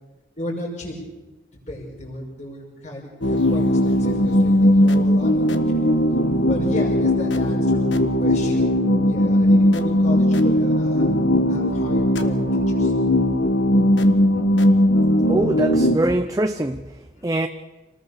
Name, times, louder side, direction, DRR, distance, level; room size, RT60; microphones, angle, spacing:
voice 1, 0.4-1.0 1.7-5.3 6.5-11.1 11.4-12.9 17.1-17.3, left 1 dB, 40° left, 5.6 m, -34 dB
sound 1, 3.2-16.0, left 1 dB, 85° left, 1.5 m, -18 dB
voice 2, 15.3-17.5, right 1 dB, 20° right, 0.7 m, -23 dB
27.5 x 19.5 x 6.8 m
head